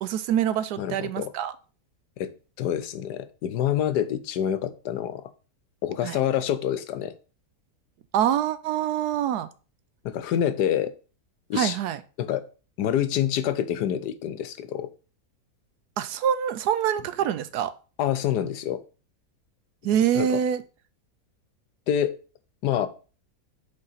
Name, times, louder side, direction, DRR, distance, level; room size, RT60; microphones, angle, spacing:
voice 1, 0.0-1.5 6.0-6.2 8.1-9.5 11.5-12.0 16.0-17.7 19.8-20.6, right 9 dB, 75° right, 13 dB, 1.1 m, -25 dB
voice 2, 0.8-1.3 2.2-2.3 2.6-5.2 5.8-7.1 10.0-10.9 11.5-11.8 12.2-12.4 12.8-14.9 18.0-18.8 20.1-20.3 21.9-22.2 22.6-22.9, left 10 dB, 80° left, 12 dB, 1.2 m, -26 dB
5.3 x 4.1 x 5.5 m, 0.35 s
omnidirectional pair, 1.8 m